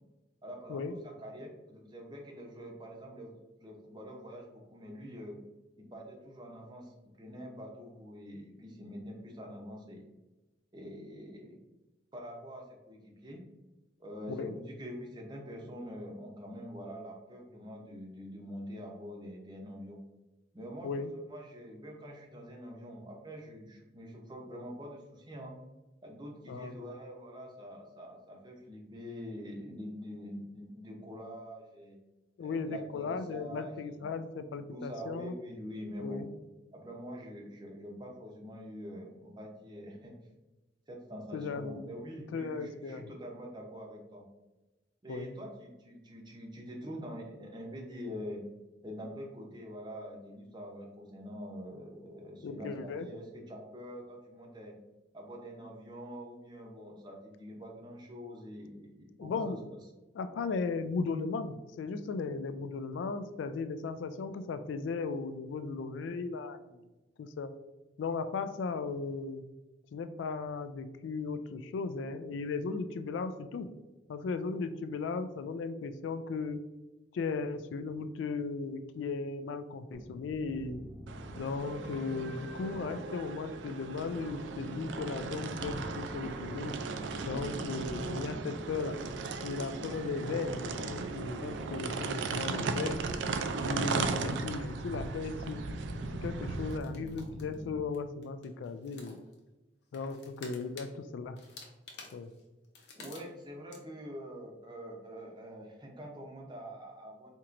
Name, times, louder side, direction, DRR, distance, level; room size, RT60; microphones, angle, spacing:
voice 1, 0.4-3.3 3.6-5.4 5.8-10.1 10.7-11.6 12.1-13.4 14.0-20.0 20.5-21.0 21.3-25.5 26.0-32.0 32.4-34.0 34.7-36.2 36.7-40.1 40.9-44.2 45.0-48.4 48.8-54.7 55.1-59.6 103.0-107.3, equal, 25° right, 0 dB, 0.6 m, -45 dB
voice 2, 32.4-35.3 36.0-36.3 41.3-41.9 42.3-43.1 45.1-45.3 52.4-53.1 59.2-59.6 60.1-66.8 67.2-67.5 68.0-69.4 69.9-73.7 74.1-76.6 77.1-80.9 81.4-86.8 87.2-89.0 89.4-93.1 93.6-95.6 96.2-99.2 99.9-101.4 102.1-102.3, left 4 dB, 90° left, 11 dB, 0.3 m, -36 dB
sound 1, 79.9-97.8, left 1 dB, 25° left, 0.5 m, -46 dB
sound 2, 81.1-96.8, right 4 dB, 80° right, 0.3 m, -37 dB
sound 3, 96.7-97.6 97.9-98.0 98.2-99.4 99.9-100.9 101.4-103.4 103.7-103.8, left 4 dB, 70° left, 0.8 m, -51 dB
4.4 x 2.9 x 2.5 m, 1.1 s
head